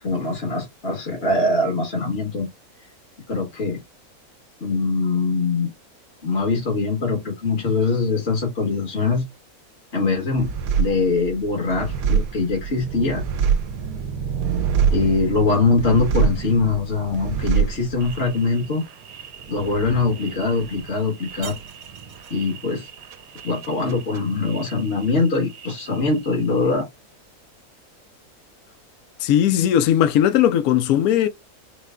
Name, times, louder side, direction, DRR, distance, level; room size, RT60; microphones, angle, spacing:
voice 1, 0.0-2.5 3.3-3.8 4.6-5.7 6.2-9.3 9.9-10.5 10.8-13.2 14.9-18.8 19.5-21.6 22.3-22.9 23.4-26.9, left 3 dB, 45° left, 1.6 m, -22 dB
sound 1, 10.4-25.3 25.5-26.3, right 7 dB, 75° right, 1.0 m, -27 dB
voice 2, 29.2-31.3, left 10 dB, 75° left, 1.0 m, -18 dB
4.5 x 2.2 x 3.6 m
omnidirectional pair, 1.6 m